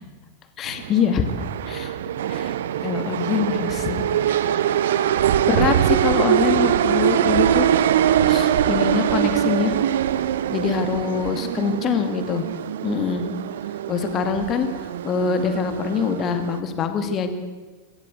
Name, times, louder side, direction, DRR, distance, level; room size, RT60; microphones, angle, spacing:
voice 1, 0.6-1.3 1.7-1.9 2.3-2.5 2.8-4.4 5.0-7.7 8.3-9.8 10.5-12.5 12.8-13.2 13.9-14.7 15.0-17.3, left 6 dB, 30° left, 8 dB, 2.4 m, -24 dB
sound 1, 0.7-16.6, right 10 dB, 60° right, 0.7 m, -23 dB
25.5 x 14.0 x 8.2 m, 1.4 s
figure-of-eight pair, 90°, 0 cm